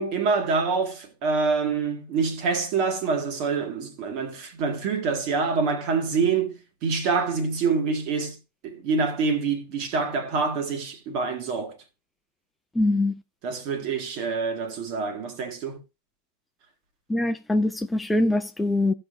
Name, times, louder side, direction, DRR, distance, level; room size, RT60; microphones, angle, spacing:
voice 1, 0.0-8.4 8.6-11.8 13.4-15.8, right 4 dB, 45° right, 1.9 m, -26 dB
voice 2, 12.7-13.1 17.1-18.9, left 2 dB, 10° left, 0.7 m, -23 dB
16.5 x 5.7 x 2.7 m
figure-of-eight pair, 90°, 0 cm